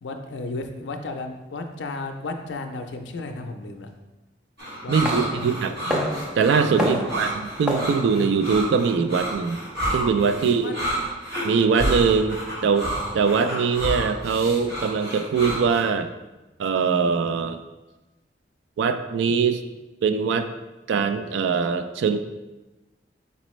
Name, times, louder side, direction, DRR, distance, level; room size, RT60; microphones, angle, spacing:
voice 1, 0.0-3.9 4.8-5.8 6.8-7.2 10.4-11.0, left 2 dB, 85° left, 5 dB, 0.5 m, -34 dB
sound 1, 4.6-15.9, right 1 dB, 60° right, 1.3 m, -30 dB
voice 2, 4.9-6.0 6.4-9.6 9.9-10.7 11.4-12.4 12.6-16.1 16.6-17.6 18.8-19.6 20.0-20.5 20.9-22.2, right 5 dB, 80° right, 8 dB, 0.3 m, -22 dB
sound 2, 5.0-9.8, equal, 5° right, 0.5 m, -31 dB
4.2 x 4.1 x 3.1 m, 1.1 s
head